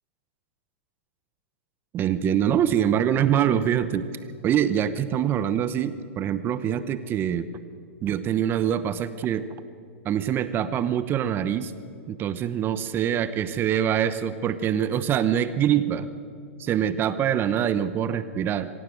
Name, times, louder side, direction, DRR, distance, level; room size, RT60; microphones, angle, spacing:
voice 1, 1.9-4.1 4.4-7.5 8.0-9.5 10.0-11.7 12.1-16.1 16.6-18.7, right 9 dB, 30° right, 14 dB, 0.9 m, -24 dB
24.5 x 16.5 x 8.0 m, 2.4 s
hypercardioid pair, 115°, 7 cm